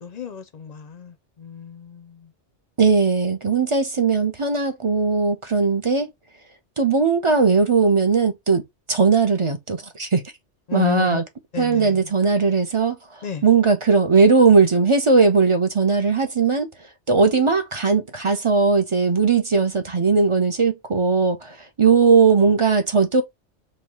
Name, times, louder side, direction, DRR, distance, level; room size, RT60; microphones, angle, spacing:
voice 1, 0.0-2.3 10.7-11.2 11.5-12.1 13.2-13.4, left 7 dB, 50° left, 0.5 m, -30 dB
voice 2, 2.8-6.1 6.8-8.6 8.9-10.2 10.7-11.2 11.6-16.7 17.1-23.2, right 4 dB, 35° right, 0.6 m, -18 dB
5.4 x 2.3 x 2.9 m
omnidirectional pair, 1.2 m